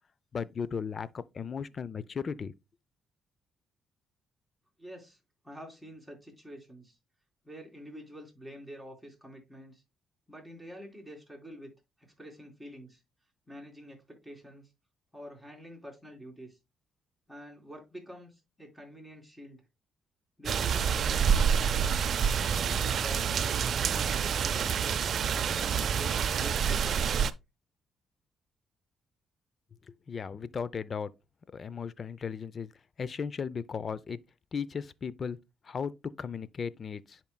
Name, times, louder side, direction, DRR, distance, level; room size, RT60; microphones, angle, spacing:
voice 1, 0.3-2.5 30.1-31.1 31.5-32.7 33.0-34.2 34.5-35.4 35.6-35.9 36.2-37.2, left 6 dB, 45° left, 0.5 m, -36 dB
voice 2, 4.8-5.2 5.4-7.0 7.4-9.8 10.3-11.7 12.2-13.0 13.5-14.7 15.1-16.6 17.3-19.6 20.4-22.1 22.6-25.0 25.5-27.0, equal, 5° left, 3.3 m, -47 dB
sound 1, 20.4-27.3, right 7 dB, 60° right, 0.4 m, -27 dB
10.5 x 4.4 x 2.2 m
cardioid pair, 90°, 0 cm